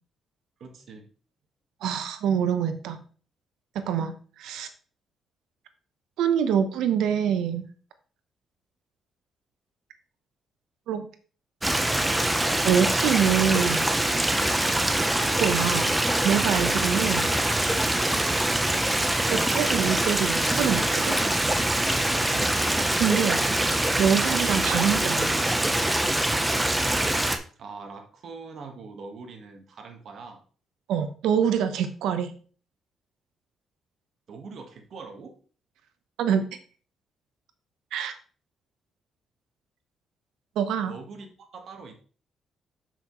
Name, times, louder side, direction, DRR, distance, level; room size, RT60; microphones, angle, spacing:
voice 1, 0.6-1.1 22.3-22.6 27.6-30.4 34.3-35.4 40.9-41.9, right 4 dB, 60° right, 5 dB, 1.5 m, -42 dB
voice 2, 1.8-3.0 3.9-4.7 6.2-7.7 10.9-11.1 12.6-13.8 15.2-15.9 16.2-17.3 19.3-21.1 23.0-23.5 24.0-25.6 30.9-32.3 36.2-36.4 37.9-38.1 40.6-40.9, right 8 dB, 85° right, 9 dB, 0.9 m, -25 dB
Stream, 11.6-27.4, right 1 dB, 10° right, 0.8 m, -24 dB
7.0 x 6.2 x 3.1 m, 0.40 s
cardioid pair, 90°, 0 cm